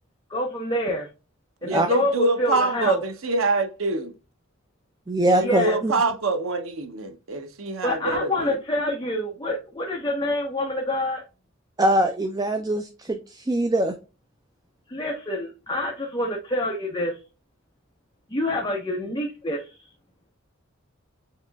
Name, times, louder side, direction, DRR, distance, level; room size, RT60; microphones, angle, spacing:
voice 1, 0.3-1.1 1.6-3.0 5.4-5.8 7.8-11.2 14.9-17.2 18.3-19.7, left 1 dB, 20° left, 0.9 m, -27 dB
voice 2, 1.6-4.1 5.4-8.6, right 2 dB, 85° right, 0.8 m, -25 dB
voice 3, 5.1-5.9 11.8-13.9, right 1 dB, 20° right, 0.4 m, -22 dB
7.3 x 2.9 x 2.3 m
head